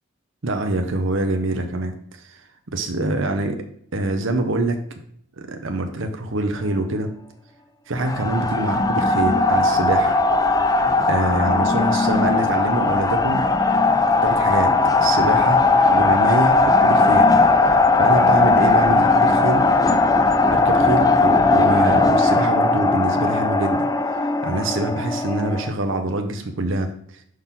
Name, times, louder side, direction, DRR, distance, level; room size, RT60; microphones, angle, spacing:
voice 1, 0.4-2.4 2.7-3.6 3.9-4.8 5.4-7.1 7.9-10.2 11.1-13.5 14.2-15.6 15.9-17.3 18.0-19.7 20.5-23.9 24.4-27.0, right 2 dB, 90° right, 5 dB, 0.8 m, -25 dB
sound 1, 8.0-25.7, left 3 dB, 20° left, 0.4 m, -18 dB
6.4 x 5.8 x 3.7 m, 0.64 s
head